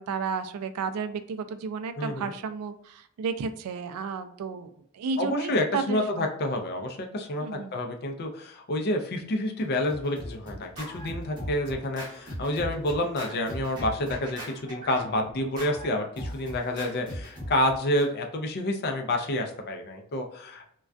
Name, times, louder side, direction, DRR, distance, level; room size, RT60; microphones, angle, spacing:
voice 1, 0.0-6.3 7.4-7.7, right 5 dB, 85° right, 10 dB, 0.3 m, -33 dB
voice 2, 2.0-2.3 5.2-7.5 7.7-20.7, left 1 dB, 45° left, 3 dB, 0.4 m, -29 dB
Scratching (performance technique), 9.6-18.1, equal, 20° right, 1.0 m, -39 dB
2.3 x 2.2 x 2.4 m, 0.66 s
head